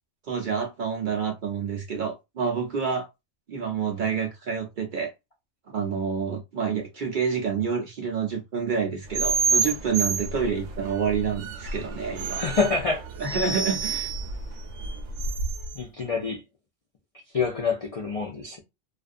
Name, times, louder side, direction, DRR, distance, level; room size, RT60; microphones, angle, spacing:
voice 1, 0.3-3.1 3.5-5.1 5.7-12.4 13.2-14.1, right 6 dB, 55° right, 0.6 m, -28 dB
sound 1, 9.1-15.8, right 5 dB, 90° right, 0.9 m, -29 dB
voice 2, 12.3-13.1 13.4-13.5 15.7-16.4 17.3-18.6, left 4 dB, 60° left, 0.3 m, -27 dB
2.4 x 2.3 x 2.4 m
omnidirectional pair, 1.2 m